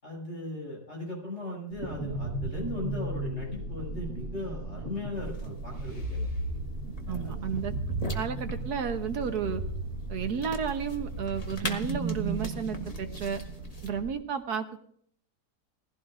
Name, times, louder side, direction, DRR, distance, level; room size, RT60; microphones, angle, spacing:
voice 1, 0.0-6.2 7.1-7.4, left 1 dB, 45° left, -2 dB, 6.6 m, -38 dB
sound 1, 1.7-14.1, right 2 dB, 60° right, 1.9 m, -35 dB
sound 2, 5.1-13.9, left 2 dB, 25° left, 1.4 m, -44 dB
voice 2, 7.1-7.7 8.1-9.6 10.1-13.4 13.8-14.8, right 6 dB, 75° right, 8 dB, 1.5 m, -32 dB
20.0 x 15.5 x 2.5 m, 0.63 s
omnidirectional pair, 1.7 m